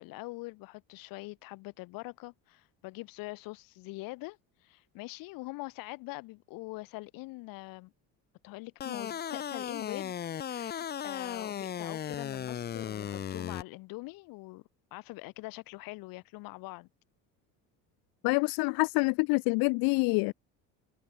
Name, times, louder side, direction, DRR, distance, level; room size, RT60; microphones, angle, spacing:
voice 1, 0.0-7.9 8.4-10.1 10.5-14.6 14.9-16.9, left 23 dB, 75° left, 5.3 m, -43 dB
sound 1, 8.8-13.6, left 9 dB, 30° left, 1.8 m, -36 dB
voice 2, 18.2-20.3, left 28 dB, 90° left, 0.9 m, -26 dB
cardioid pair, 180°, 35 cm